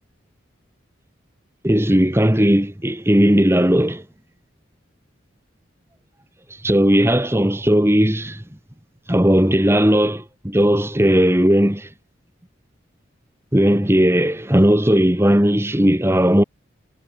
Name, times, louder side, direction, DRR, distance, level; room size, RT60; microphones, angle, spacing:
voice 1, 1.6-4.0 6.6-8.4 9.1-11.9 13.5-16.4, equal, 10° right, 1.4 m, -16 dB
head